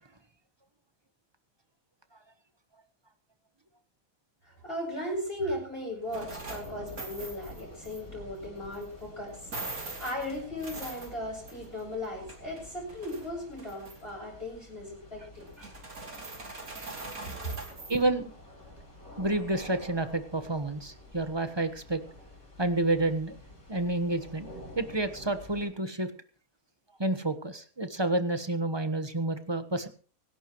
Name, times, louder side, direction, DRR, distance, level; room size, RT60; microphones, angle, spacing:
voice 1, 4.5-15.7, left 1 dB, 40° left, -4 dB, 8.0 m, -37 dB
sound 1, 6.1-25.7, left 1 dB, 65° left, 6.4 m, -49 dB
sound 2, 6.1-8.0 8.7-8.8 9.3-11.8 12.0-13.3 13.6-14.1 15.4-18.0, right 3 dB, 75° right, 3.3 m, -42 dB
voice 2, 17.9-18.3 19.2-22.0 22.6-23.4 23.7-26.1 27.0-29.9, right 2 dB, 20° right, 9 dB, 1.2 m, -29 dB
25.0 x 11.5 x 3.1 m, 0.40 s
omnidirectional pair, 1.6 m